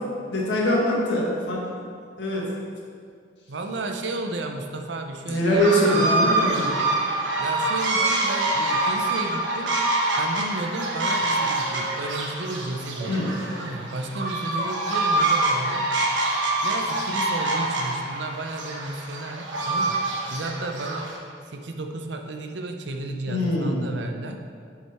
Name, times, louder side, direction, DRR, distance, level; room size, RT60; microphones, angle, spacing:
voice 1, 0.3-1.8 2.2-2.4 5.3-6.7 13.1-13.2 23.3-23.8, left 1 dB, 75° left, -3 dB, 1.6 m, -23 dB
voice 2, 3.5-6.1 7.4-9.7 10.2-15.9 16.6-20.0 20.3-21.1 21.5-24.4, right 2 dB, 70° right, 4 dB, 0.7 m, -33 dB
sound 1, 5.6-21.2, right 2 dB, 85° right, 1.2 m, -25 dB
8.0 x 4.9 x 4.4 m, 2.2 s
head